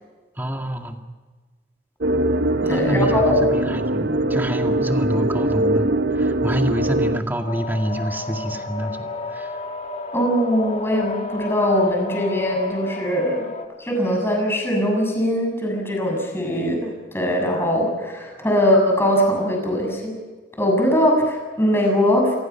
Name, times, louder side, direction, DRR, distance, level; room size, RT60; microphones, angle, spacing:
voice 1, 0.4-1.0 2.6-9.6, equal, 10° right, 3 dB, 2.1 m, -27 dB
sound 1, 2.0-7.2, right 1 dB, 70° right, 1.0 m, -21 dB
voice 2, 2.7-3.4 10.1-13.5 13.8-20.2 20.6-22.4, equal, 15° left, 1 dB, 7.1 m, -21 dB
sound 2, 7.5-13.6, left 3 dB, 40° left, 2.0 m, -32 dB
28.5 x 19.5 x 5.9 m, 1.4 s
head